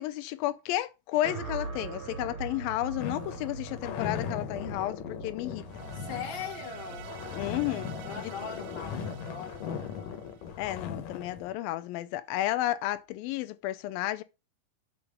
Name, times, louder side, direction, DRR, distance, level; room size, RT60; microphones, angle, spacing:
voice 1, 0.0-5.6 7.3-8.3 10.6-14.2, left 15 dB, 90° left, 2.5 m, -32 dB
sound 1, 1.2-9.5, right 4 dB, 40° right, 2.4 m, -43 dB
sound 2, 3.0-11.5, left 7 dB, 70° left, 2.5 m, -38 dB
sound 3, 5.7-10.9, right 13 dB, 75° right, 2.0 m, -48 dB
voice 2, 5.9-7.1 8.0-10.1, left 7 dB, 45° left, 0.7 m, -41 dB
6.8 x 5.5 x 6.6 m
omnidirectional pair, 4.1 m